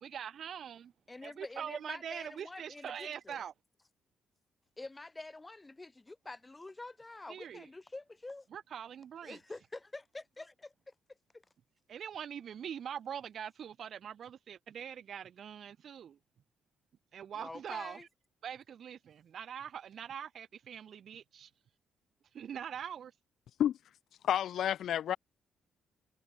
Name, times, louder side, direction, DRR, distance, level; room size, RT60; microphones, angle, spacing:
voice 1, 0.0-0.9 1.2-3.5 7.3-7.7 8.5-9.4 11.9-16.2 17.1-18.0 18.4-21.5 22.3-23.1, right 8 dB, 60° right, 3.5 m, -43 dB
voice 2, 1.1-3.4 4.8-8.5 9.2-10.9 11.3-11.4 17.3-18.1, left 2 dB, 20° left, 7.0 m, -47 dB
voice 3, 24.2-25.2, left 10 dB, 70° left, 0.9 m, -30 dB
cardioid pair, 90°, 0 cm